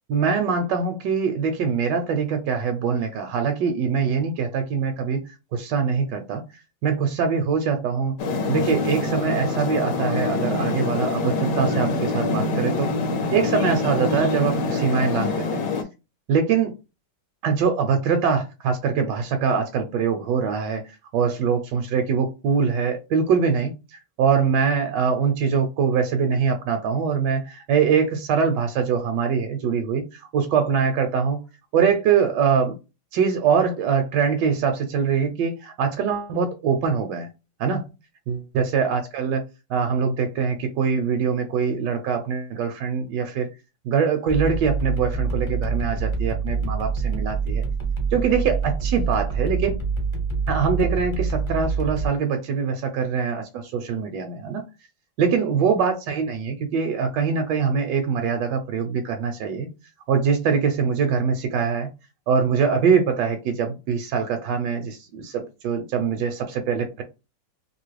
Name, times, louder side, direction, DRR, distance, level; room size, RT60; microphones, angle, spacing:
voice 1, 0.1-5.2 5.5-6.4 6.8-8.1 8.5-12.9 13.3-15.6 16.3-16.7 17.4-31.4 31.7-32.8 33.1-37.3 37.6-37.8 38.3-39.4 39.7-43.5 43.8-47.6 48.1-49.8 50.5-53.4 53.9-54.7 55.2-59.7 60.1-61.9 62.3-67.0, right 6 dB, 75° right, 5 dB, 1.2 m, -23 dB
sound 1, 8.2-15.8, left 3 dB, 65° left, 1.0 m, -25 dB
sound 2, 44.3-52.1, right 4 dB, 25° left, 0.6 m, -26 dB
3.0 x 2.6 x 3.1 m, 0.28 s
omnidirectional pair, 1.9 m